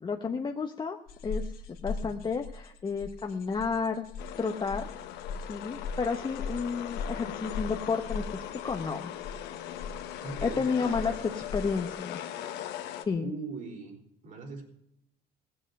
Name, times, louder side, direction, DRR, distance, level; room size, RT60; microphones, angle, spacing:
voice 1, 0.0-1.0 1.2-1.5 1.8-4.0 4.4-4.9 5.5-9.1 10.4-12.2 13.1-13.3, left 5 dB, 25° left, 3 dB, 0.9 m, -31 dB
sound 1, 1.1-11.9, left 4 dB, 65° left, 1.8 m, -40 dB
sound 2, 4.2-13.0, left 11 dB, 90° left, 1.2 m, -40 dB
voice 2, 10.2-11.2 13.2-14.0 14.2-14.7, right 4 dB, 50° right, 1 dB, 4.4 m, -40 dB
17.5 x 7.8 x 6.6 m, 0.77 s
cardioid pair, 110°, 17 cm